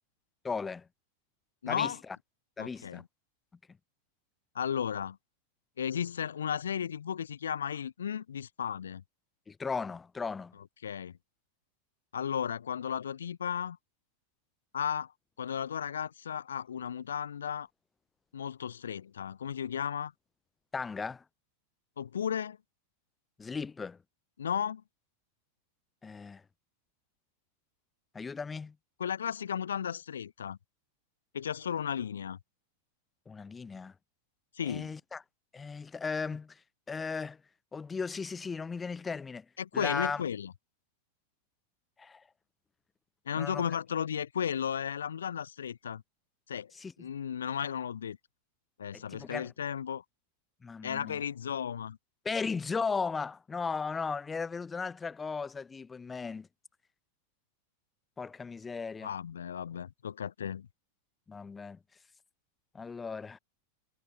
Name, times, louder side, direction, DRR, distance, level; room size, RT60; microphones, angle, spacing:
voice 1, 0.4-0.8 1.7-1.9 2.6-3.0 9.5-10.5 20.7-21.2 23.4-24.0 26.0-26.4 28.1-28.7 33.3-33.9 34.6-35.2 35.5-36.5 36.9-37.4 37.7-39.4 39.7-40.2 42.0-42.2 43.4-43.6 46.7-46.9 48.9-49.5 50.6-51.2 52.2-56.5 58.2-59.1 61.3-61.8 62.7-63.4, left 5 dB, 15° left, 1.1 m, -36 dB
voice 2, 1.6-2.0 2.6-3.1 4.5-5.2 5.8-9.0 10.8-11.2 12.1-13.8 14.7-15.1 15.4-17.7 18.3-20.1 22.0-22.6 24.4-24.8 29.0-30.6 31.3-32.4 34.5-34.9 39.6-40.5 43.3-46.0 46.5-46.7 47.0-48.2 48.8-50.0 50.8-52.0 59.0-60.7, left 8 dB, 65° left, 1.2 m, -34 dB
figure-of-eight pair, 90°, 0 cm